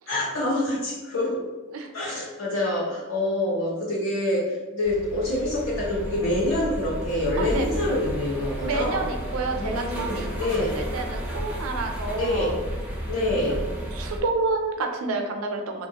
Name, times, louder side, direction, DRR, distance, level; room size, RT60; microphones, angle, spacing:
voice 1, 0.1-1.4 1.9-9.0 9.6-10.7 12.1-12.5 13.1-13.6, left 1 dB, 75° left, -5 dB, 1.0 m, -26 dB
sound 1, 4.8-14.2, equal, 5° right, 0.4 m, -33 dB
voice 2, 7.4-7.7 8.6-10.5 10.7-12.6 13.3-15.9, right 3 dB, 80° right, 4 dB, 0.4 m, -29 dB
2.8 x 2.4 x 2.8 m, 1.2 s
head